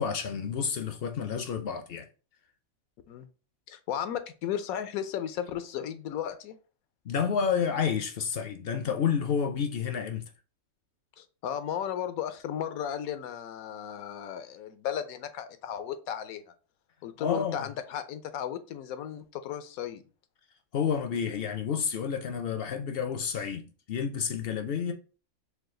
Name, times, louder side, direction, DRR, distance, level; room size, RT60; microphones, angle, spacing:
voice 1, 0.0-2.1 7.1-10.2 17.2-17.7 20.7-24.9, left 7 dB, 65° left, 0.6 m, -30 dB
voice 2, 3.7-6.6 11.2-16.4 17.0-20.0, left 9 dB, 90° left, 1.1 m, -35 dB
4.8 x 2.3 x 3.7 m
omnidirectional pair, 1.5 m